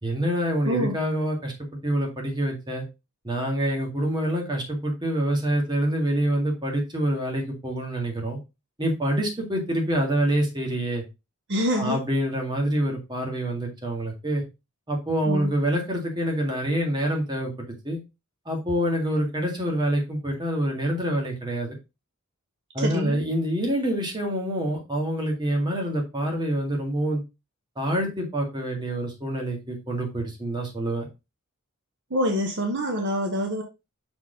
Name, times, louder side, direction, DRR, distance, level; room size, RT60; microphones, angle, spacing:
voice 1, 0.0-1.5 1.8-2.8 3.2-8.4 8.8-11.0 11.7-14.4 14.9-18.0 18.5-21.7 22.7-27.2 27.8-31.1, right 1 dB, 20° right, 1.9 m, -26 dB
voice 2, 0.7-1.0 11.5-12.0 15.3-15.5 22.8-23.2 32.1-33.6, equal, 55° right, 1.0 m, -26 dB
6.0 x 4.4 x 3.8 m
head